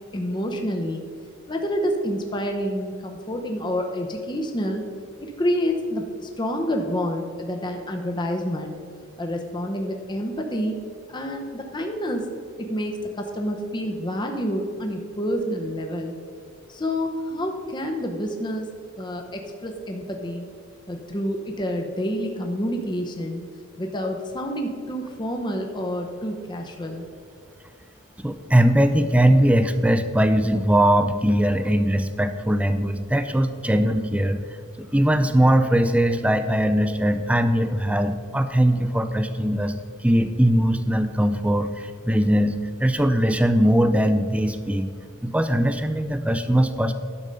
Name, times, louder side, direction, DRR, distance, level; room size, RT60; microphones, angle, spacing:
voice 1, 0.1-1.0 1.5-4.8 5.2-8.7 9.2-10.8 11.1-12.3 12.6-16.1 16.7-18.7 19.0-20.5 20.9-23.4 23.8-27.1, equal, 20° left, 3 dB, 0.8 m, -28 dB
voice 2, 28.2-34.4 34.8-39.7 40.0-44.9 45.2-46.9, equal, 5° right, 9 dB, 0.5 m, -20 dB
11.0 x 7.0 x 5.3 m, 2.3 s
head